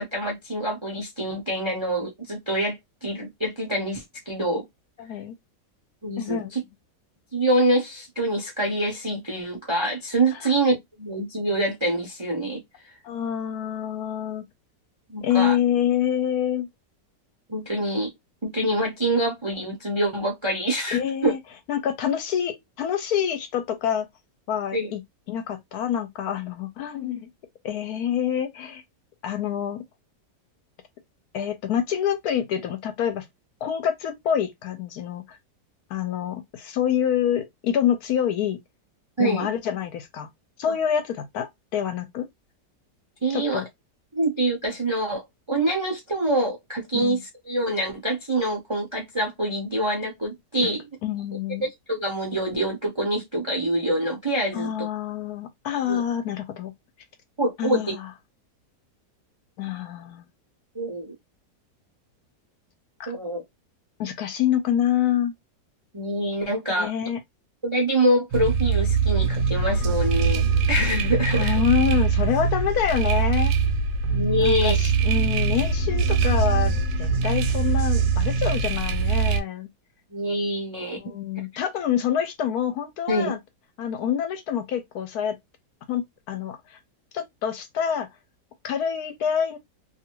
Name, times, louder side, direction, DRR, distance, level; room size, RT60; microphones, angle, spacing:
voice 1, 0.0-4.6 6.0-6.6 7.3-12.6 15.1-15.6 17.5-18.1 18.4-21.3 24.7-24.9 39.2-39.5 40.7-40.8 43.2-43.6 44.1-45.2 45.5-50.8 51.6-54.9 55.8-56.0 57.4-57.9 60.7-61.1 63.1-63.4 65.9-66.9 67.6-71.6 74.1-74.8 80.1-81.1 83.1-83.3, right 1 dB, 40° right, 0.4 m, -25 dB
voice 2, 5.0-5.3 6.2-6.5 13.0-14.4 15.2-16.7 20.9-21.4 21.7-24.1 24.5-25.0 25.3-27.3 27.6-28.8 29.2-29.8 31.3-33.2 33.6-35.4 35.9-38.6 39.2-40.3 40.6-42.3 43.3-43.6 46.9-47.2 50.6-50.7 51.0-51.7 54.5-56.7 57.6-58.0 59.6-60.2 63.0-63.1 64.0-65.3 66.8-67.2 71.3-73.5 74.4-79.7 81.0-83.4 83.8-85.4 85.9-86.0 86.3-86.8 87.1-88.1 88.6-89.6, left 9 dB, 70° left, 1.0 m, -26 dB
sound 1, 68.3-79.4, right 5 dB, 80° right, 1.2 m, -22 dB
2.7 x 2.4 x 2.8 m
omnidirectional pair, 1.8 m